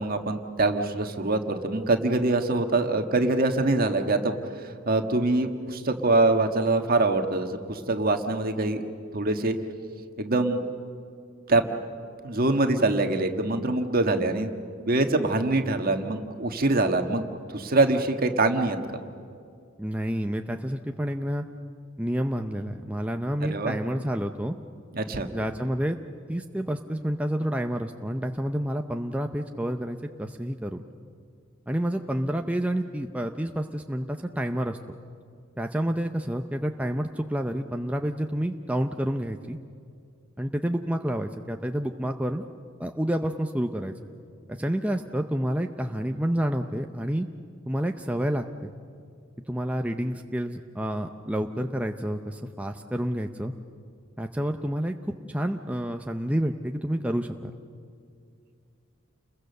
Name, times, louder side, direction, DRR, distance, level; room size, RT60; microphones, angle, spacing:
voice 1, 0.0-8.9 9.1-9.6 10.2-10.6 11.5-11.6 12.2-14.5 14.9-18.8 23.4-23.8 24.9-25.3, right 2 dB, 45° right, 6 dB, 1.6 m, -24 dB
voice 2, 19.8-21.4 22.0-24.6 25.3-26.0 26.3-30.8 31.7-34.8 35.6-39.6 40.4-42.4 42.8-43.9 44.5-47.3 47.7-48.7 49.5-53.5 54.2-57.5, equal, 5° right, 4 dB, 0.6 m, -29 dB
29.5 x 22.0 x 6.7 m, 2.4 s
head